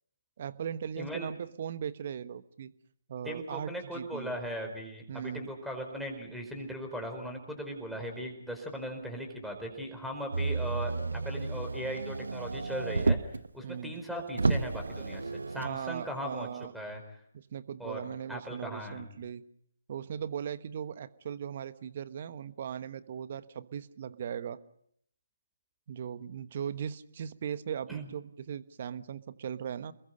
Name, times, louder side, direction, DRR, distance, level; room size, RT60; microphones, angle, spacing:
voice 1, 0.4-2.7 3.1-4.3 5.1-5.5 13.6-14.0 15.6-16.7 17.3-19.4 19.9-24.6 25.9-29.9, right 8 dB, 40° right, 13 dB, 1.2 m, -38 dB
voice 2, 1.0-1.3 3.2-13.2 13.5-17.0 17.8-18.0 18.3-19.1 27.9-28.1, equal, ahead, 3 dB, 4.7 m, -38 dB
Bird, 9.1-11.6 12.7-12.9 13.2-15.6, right 4 dB, 25° right, 4.2 m, -56 dB
Motor vehicle (road), 10.3-13.5 14.0-14.1 14.3-15.8 16.6-16.7, right 3 dB, 70° right, 0.9 m, -31 dB
29.0 x 21.5 x 5.3 m, 0.68 s
figure-of-eight pair, 145°, 0 cm